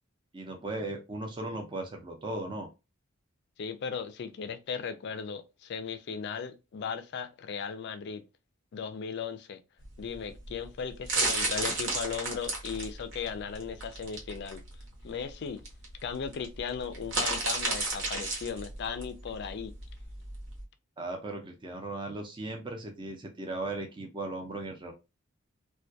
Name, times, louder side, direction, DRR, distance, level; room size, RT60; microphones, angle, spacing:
voice 1, 0.3-2.7 21.0-24.9, right 2 dB, 25° right, 0.4 m, -37 dB
voice 2, 3.6-8.2 8.7-9.6 10.0-14.6 15.0-15.6 16.0-19.7, left 6 dB, 55° left, 0.3 m, -37 dB
sound 1, 9.8-20.6, right 2 dB, 60° right, 0.9 m, -33 dB
2.2 x 2.2 x 2.6 m
head